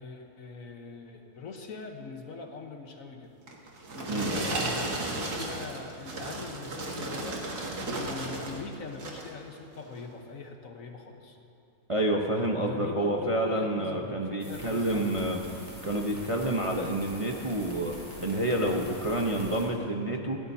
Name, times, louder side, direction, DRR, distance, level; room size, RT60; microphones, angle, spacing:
voice 1, 0.0-3.3 3.9-11.4 12.7-15.2, left 4 dB, 60° left, 3 dB, 1.5 m, -41 dB
sound 1, 3.5-8.6 8.9-9.4 9.9-10.1, right 2 dB, 75° right, 2.2 m, -34 dB
voice 2, 4.1-4.4 11.9-15.4 15.8-20.4, right 1 dB, 25° right, 0 dB, 0.8 m, -29 dB
sound 2, 14.4-19.7, equal, 10° right, 4.2 m, -45 dB
21.0 x 17.5 x 2.8 m, 2.7 s
omnidirectional pair, 1.7 m